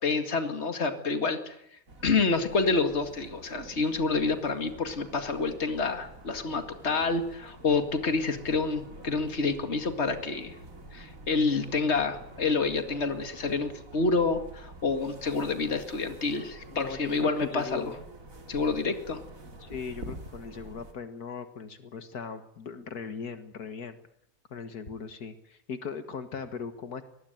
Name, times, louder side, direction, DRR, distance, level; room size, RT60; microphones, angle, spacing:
voice 1, 0.0-1.6 2.0-10.5 10.9-17.9 18.5-19.2, left 4 dB, 45° left, 8 dB, 2.4 m, -28 dB
sound 1, 1.9-20.9, right 2 dB, 60° right, 3.5 m, -48 dB
voice 2, 16.7-18.0 19.6-24.0 24.5-27.0, left 6 dB, 85° left, 9 dB, 2.1 m, -39 dB
23.5 x 19.5 x 9.3 m, 0.73 s
omnidirectional pair, 1.6 m